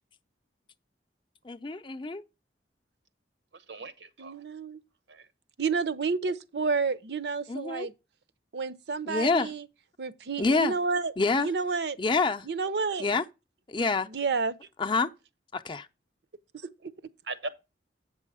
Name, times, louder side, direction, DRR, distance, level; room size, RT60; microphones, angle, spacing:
voice 1, 1.4-2.2 7.5-7.9 9.1-9.5 10.4-10.8 11.2-11.5 12.0-12.5 13.0-13.2 13.7-14.1 14.8-15.1 15.5-15.9, left 4 dB, 25° left, 0.5 m, -27 dB
voice 2, 3.5-4.4 5.1-5.3 17.2-17.5, right 2 dB, 90° right, 1.0 m, -39 dB
voice 3, 4.2-4.8 5.6-7.9 8.5-9.6 10.0-11.1 11.4-12.0 12.4-13.1 14.1-14.6 16.8-16.9, right 4 dB, 70° right, 0.6 m, -30 dB
8.4 x 6.2 x 4.8 m
head